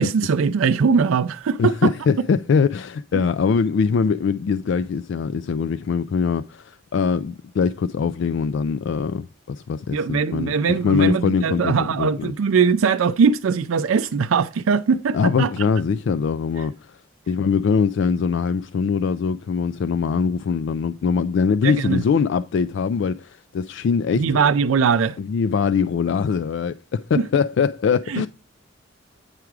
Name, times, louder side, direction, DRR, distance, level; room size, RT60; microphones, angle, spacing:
voice 1, 0.0-1.9 3.1-3.2 9.9-15.5 21.6-22.0 24.1-25.2 27.2-27.3 28.1-28.3, right 5 dB, 85° right, 0.4 m, -20 dB
voice 2, 1.6-10.5 10.8-12.3 15.1-16.7 17.3-24.4 25.2-28.3, left 6 dB, 60° left, 0.3 m, -22 dB
9.0 x 4.8 x 4.7 m
head